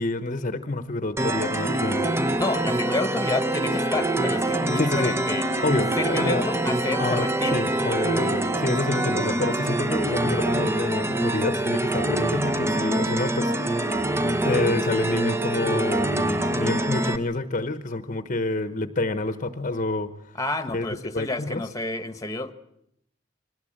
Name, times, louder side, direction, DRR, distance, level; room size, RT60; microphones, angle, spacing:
voice 1, 0.0-2.1 4.8-5.1 5.6-6.5 7.0-14.0 14.4-20.1 20.7-20.9 21.1-21.6, left 2 dB, 40° left, 11 dB, 1.1 m, -28 dB
sound 1, 1.2-17.2, right 1 dB, 15° right, 1.0 m, -25 dB
voice 2, 2.4-5.5 6.0-7.6 20.3-22.5, left 2 dB, 20° left, 11 dB, 1.4 m, -29 dB
23.5 x 19.0 x 8.8 m, 0.77 s
head